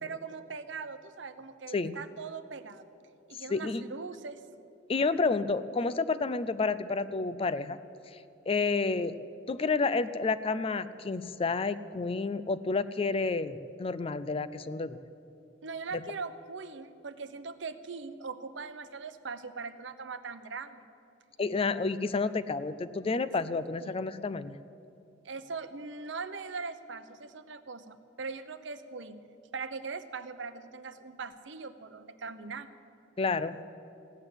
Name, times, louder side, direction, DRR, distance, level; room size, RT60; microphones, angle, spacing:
voice 1, 0.0-2.8 3.3-4.4 15.6-20.8 23.8-23.9 25.2-29.3 29.5-32.7, right 4 dB, 70° right, 11 dB, 0.8 m, -41 dB
voice 2, 3.5-3.8 4.9-7.8 8.1-8.2 8.5-9.2 9.5-15.0 21.4-24.6 33.2-33.6, left 4 dB, 30° left, 14 dB, 0.4 m, -30 dB
16.0 x 9.9 x 8.0 m, 2.7 s
head